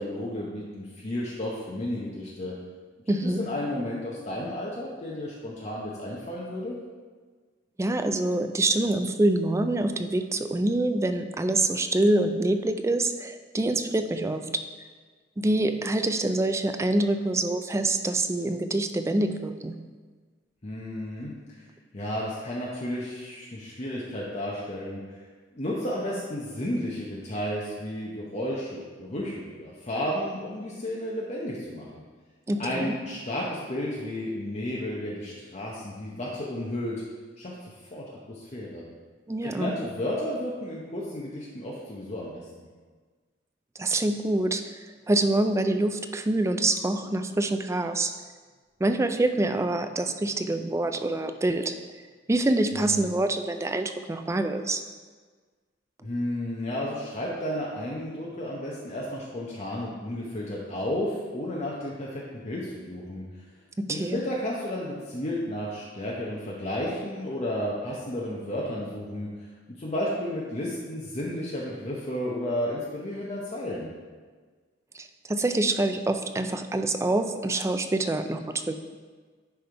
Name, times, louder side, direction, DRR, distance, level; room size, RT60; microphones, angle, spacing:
voice 1, 0.0-2.5 3.1-6.8 20.6-21.6 21.9-25.2 25.5-32.0 32.6-37.0 37.4-37.6 37.9-38.8 39.4-42.7 52.7-53.1 56.0-63.2 63.9-69.5 69.8-73.9, left 1 dB, 40° left, -5 dB, 0.9 m, -32 dB
voice 2, 3.1-3.5 7.8-14.6 15.4-19.8 32.5-33.0 39.3-39.7 43.8-44.6 45.1-48.1 48.8-51.7 52.3-54.8 63.8-64.2 74.9-78.8, right 2 dB, 15° right, 7 dB, 0.3 m, -26 dB
10.5 x 3.5 x 4.6 m, 1.5 s
head